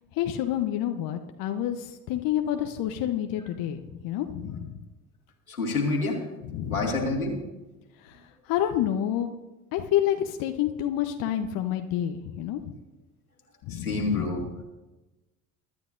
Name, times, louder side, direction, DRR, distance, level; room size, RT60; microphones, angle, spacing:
voice 1, 0.1-4.8 6.4-6.9 8.0-9.3 9.7-12.7 13.6-14.6, left 11 dB, 55° left, 5 dB, 1.0 m, -29 dB
voice 2, 5.5-6.2 6.7-7.3 13.7-14.4, left 2 dB, 90° left, -1 dB, 2.5 m, -27 dB
23.0 x 12.5 x 2.6 m, 1.1 s
figure-of-eight pair, 55°, 42 cm